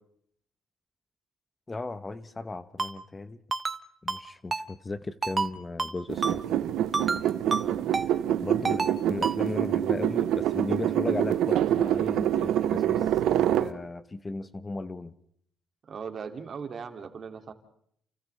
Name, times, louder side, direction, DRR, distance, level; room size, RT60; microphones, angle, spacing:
voice 1, 1.7-3.4 4.0-6.4 8.4-13.1 13.6-15.1, left 3 dB, 25° left, 13 dB, 1.0 m, -36 dB
Ringtone, 2.8-2.9 3.5-3.8 4.1-4.2 4.5-4.6 5.2-5.5 5.8-5.9 6.2-6.4 6.9-7.2 7.5-7.6 7.9-8.1 8.6-8.9 9.2-9.4, right 4 dB, 30° right, 1.3 m, -28 dB
sound 1, 6.1-13.7, right 11 dB, 85° right, 1.0 m, -26 dB
voice 2, 7.5-7.9 15.9-17.5, right 6 dB, 50° right, 6 dB, 2.5 m, -39 dB
29.5 x 29.0 x 3.3 m, 0.66 s
cardioid pair, 90°, 0 cm